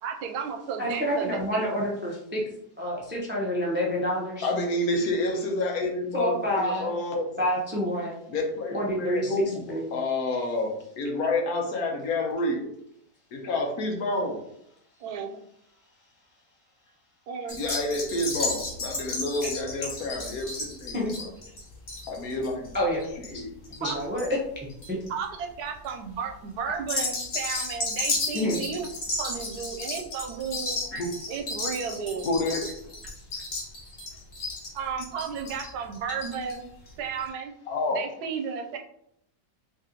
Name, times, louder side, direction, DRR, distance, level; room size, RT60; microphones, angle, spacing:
voice 1, 0.0-1.7 15.0-15.4 17.3-17.8 23.8-24.0 25.1-28.9 29.2-30.8 31.3-32.4 34.7-36.7 37.0-37.5 37.9-38.8, right 6 dB, 80° right, 3 dB, 1.1 m, -33 dB
voice 2, 0.8-2.4 2.8-4.5 6.1-6.9 7.4-8.2 8.7-9.3 9.7-9.8 19.4-19.5 20.9-21.1 22.7-23.1 23.3-23.4 23.8-24.3 24.9-25.0 28.3-28.6 30.9-31.0, equal, 15° right, -3 dB, 0.3 m, -28 dB
voice 3, 4.4-7.4 8.3-12.7 13.3-14.4 17.5-21.3 22.1-22.7 23.3-23.5 30.9-31.1 32.2-32.6 37.7-38.0, left 2 dB, 70° left, 2 dB, 1.2 m, -29 dB
sound 1, 17.5-24.3 24.6-25.1 25.6-25.9 26.8-36.6 36.9-37.0 37.2-37.3, left 3 dB, 50° left, 1.7 m, -33 dB
3.2 x 2.8 x 3.7 m, 0.72 s
omnidirectional pair, 1.7 m